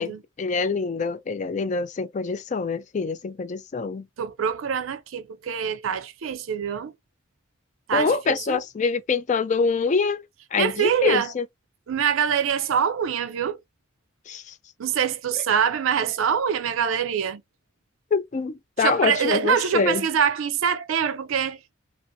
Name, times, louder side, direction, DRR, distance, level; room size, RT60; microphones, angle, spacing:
voice 1, 0.4-4.0 7.9-10.2 10.5-11.4 14.3-14.4 18.1-20.0, left 4 dB, 35° left, 0.3 m, -25 dB
voice 2, 4.2-6.9 7.9-8.6 10.6-11.3 11.9-13.6 14.8-17.4 18.8-21.6, right 7 dB, 85° right, 0.4 m, -24 dB
2.5 x 2.5 x 2.6 m
head